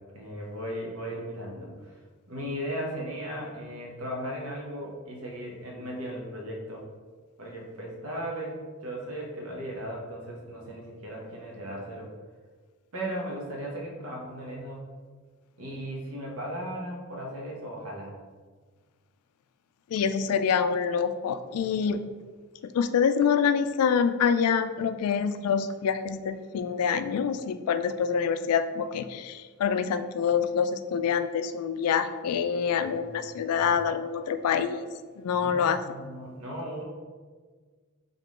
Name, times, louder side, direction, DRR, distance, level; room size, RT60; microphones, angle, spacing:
voice 1, 0.1-2.0 2.3-6.8 7.4-12.1 12.9-14.8 15.6-18.1 32.7-33.7 35.3-36.8, equal, 85° right, -2 dB, 1.1 m, -37 dB
voice 2, 19.9-22.0 22.7-34.9 35.2-35.8, left 7 dB, 85° left, 11 dB, 0.3 m, -26 dB
3.8 x 3.7 x 3.6 m, 1.5 s
head